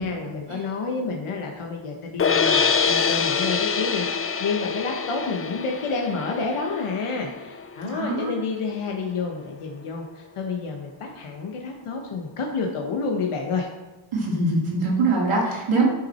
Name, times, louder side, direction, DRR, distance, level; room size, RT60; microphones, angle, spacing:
voice 1, 0.0-13.7, left 4 dB, 85° left, 1 dB, 1.3 m, -29 dB
sound 1, 2.2-8.4, left 5 dB, 30° left, 0.4 m, -25 dB
voice 2, 7.8-8.3 14.1-15.9, right 3 dB, 85° right, -4 dB, 2.8 m, -23 dB
11.0 x 5.9 x 4.4 m, 1.2 s
wide cardioid pair, 155°, 49 cm